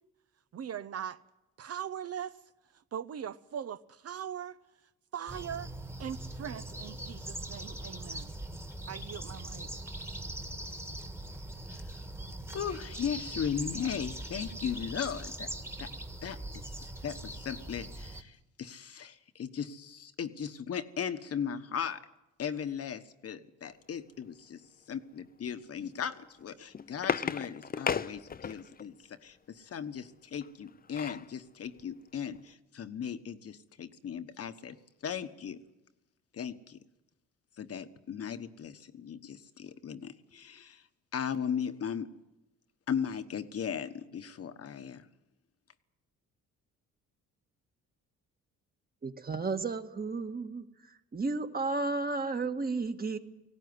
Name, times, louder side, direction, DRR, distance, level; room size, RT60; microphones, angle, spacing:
voice 1, 0.5-1.2 1.6-2.4 2.9-4.6 5.1-5.7 6.0-8.4 8.9-9.7, right 9 dB, 55° right, 0.8 m, -40 dB
sound 1, 5.3-18.2, right 1 dB, 10° right, 1.7 m, -41 dB
voice 2, 12.5-15.5 15.8-15.9 16.2-22.0 22.4-24.6 24.9-34.8 35.0-35.6 36.3-36.8 37.6-40.8 41.1-42.1 42.9-45.0, left 7 dB, 50° left, 1.3 m, -37 dB
sound 2, 26.4-28.9 30.4-31.3 31.8-31.9 32.2-32.4, left 6 dB, 30° left, 0.7 m, -35 dB
voice 3, 49.0-50.7 51.1-53.2, right 3 dB, 30° right, 1.7 m, -33 dB
19.0 x 16.5 x 9.7 m
cardioid pair, 90°, 30 cm